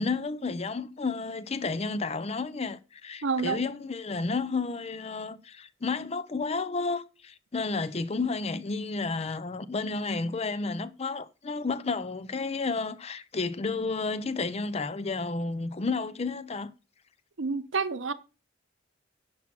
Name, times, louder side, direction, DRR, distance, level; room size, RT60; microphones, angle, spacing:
voice 1, 0.0-16.7, left 3 dB, 30° left, 0.5 m, -31 dB
voice 2, 3.2-3.6 17.4-18.1, right 4 dB, 70° right, 0.8 m, -28 dB
10.5 x 6.0 x 6.0 m
head